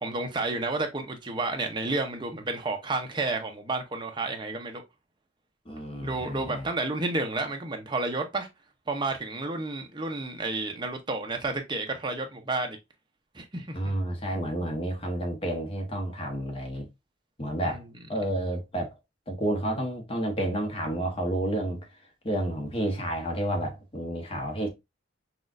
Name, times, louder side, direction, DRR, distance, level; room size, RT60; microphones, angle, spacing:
voice 1, 0.0-4.8 6.0-8.5 8.9-12.8 13.3-13.8 17.6-17.8, right 2 dB, 25° right, 0.7 m, -31 dB
voice 2, 5.7-6.7 13.7-16.9 17.4-17.8 18.1-19.0 19.3-21.9 22.2-24.7, right 1 dB, 30° left, 1.0 m, -30 dB
6.0 x 2.4 x 2.5 m
head